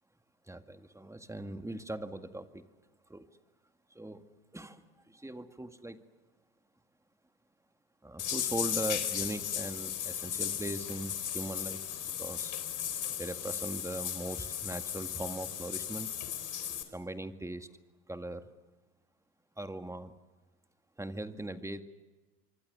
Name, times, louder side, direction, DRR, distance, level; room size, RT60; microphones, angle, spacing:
voice 1, 0.5-2.6 3.1-3.3 3.9-4.2 4.5-6.0 8.0-11.8 12.2-12.6 13.1-16.1 16.9-17.7 18.1-18.5 19.6-20.1 21.0-21.8, right 1 dB, 5° right, 9 dB, 2.0 m, -40 dB
sound 1, 8.2-16.8, left 9 dB, 40° left, 3.9 m, -36 dB
26.5 x 24.5 x 6.8 m, 1.2 s
hypercardioid pair, 75°, 44 cm